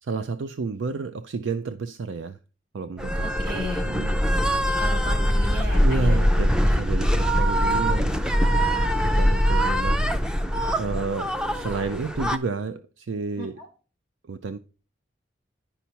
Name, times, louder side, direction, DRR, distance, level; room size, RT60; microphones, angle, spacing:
voice 1, 0.0-2.4 2.7-3.3 3.9-4.2 5.8-8.2 9.0-10.0 10.8-13.6 14.2-14.6, right 4 dB, 80° right, 0.4 m, -31 dB
sound 1, 3.0-12.4, equal, 5° right, 0.4 m, -22 dB
voice 2, 3.2-3.8 4.8-6.2 6.6-6.8 7.3-7.4 13.4-13.7, equal, 50° right, 2.6 m, -34 dB
10.0 x 5.6 x 2.8 m
head